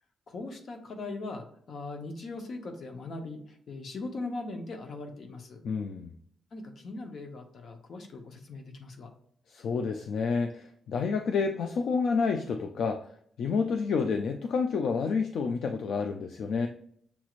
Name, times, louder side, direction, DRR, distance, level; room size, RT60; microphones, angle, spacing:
voice 1, 0.3-5.6 6.5-9.1, left 3 dB, 55° left, 4 dB, 0.9 m, -40 dB
voice 2, 5.6-6.1 9.5-13.1 13.4-16.7, left 5 dB, 70° left, 5 dB, 0.4 m, -29 dB
7.0 x 3.1 x 2.4 m, 0.65 s
wide cardioid pair, 145°, 0 cm